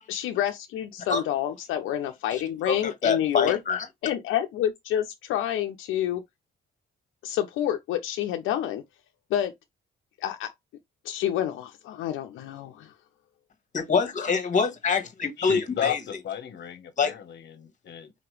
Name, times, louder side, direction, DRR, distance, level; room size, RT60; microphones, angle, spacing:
voice 1, 0.1-3.6 4.0-6.2 7.2-8.8 9.3-9.5 10.2-10.5 11.0-12.9, left 11 dB, 85° left, 0.5 m, -28 dB
voice 2, 2.3-3.9 13.7-16.0 17.0-17.1, left 5 dB, 40° left, 1.3 m, -26 dB
voice 3, 15.4-15.9 16.2-18.1, left 9 dB, 60° left, 0.9 m, -33 dB
4.2 x 2.9 x 3.1 m
cardioid pair, 90°, 20 cm